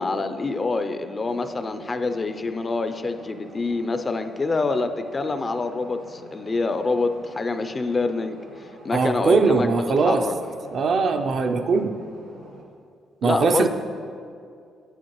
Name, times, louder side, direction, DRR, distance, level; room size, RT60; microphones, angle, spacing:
voice 1, 0.0-8.4 8.8-10.3 13.2-13.7, left 3 dB, 30° left, 9 dB, 0.4 m, -26 dB
sound 1, 1.2-12.6, right 1 dB, 75° right, 1.8 m, -47 dB
voice 2, 8.9-10.2 10.7-12.0 13.2-13.7, right 4 dB, 55° right, 6 dB, 0.5 m, -21 dB
8.9 x 7.7 x 3.0 m, 2.3 s
cardioid pair, 90°, 0 cm